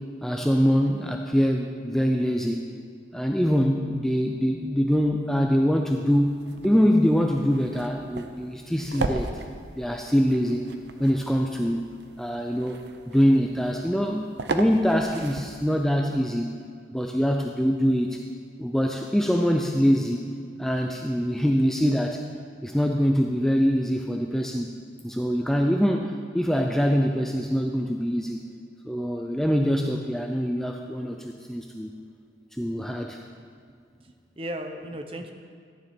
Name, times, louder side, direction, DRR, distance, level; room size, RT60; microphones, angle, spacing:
voice 1, 0.2-2.7 3.1-9.3 9.8-10.7 11.0-11.9 12.2-12.8 13.1-16.6 16.9-18.2 18.6-20.3 20.6-22.2 22.6-24.7 25.0-28.5 28.8-31.9 32.6-33.2, equal, ahead, 2 dB, 0.4 m, -24 dB
sound 1, 6.3-15.8, right 3 dB, 70° right, 0.7 m, -37 dB
voice 2, 33.9-35.3, equal, 30° right, 5 dB, 0.8 m, -36 dB
14.5 x 9.8 x 4.4 m, 2.1 s
head